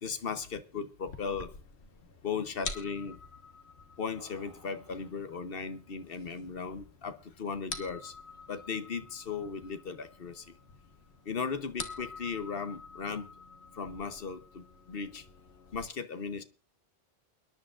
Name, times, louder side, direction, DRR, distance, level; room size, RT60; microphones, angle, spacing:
voice 1, 0.0-1.6 2.2-3.2 4.0-8.1 8.5-10.5 11.2-13.3 13.8-15.3 15.7-16.4, left 5 dB, 60° left, 1.1 m, -37 dB
sound 1, 1.1-15.9, left 4 dB, 75° left, 1.6 m, -47 dB
sound 2, 1.8-2.6 4.1-5.4 6.0-6.6, equal, 20° left, 6.5 m, -60 dB
29.0 x 10.5 x 2.4 m
omnidirectional pair, 1.1 m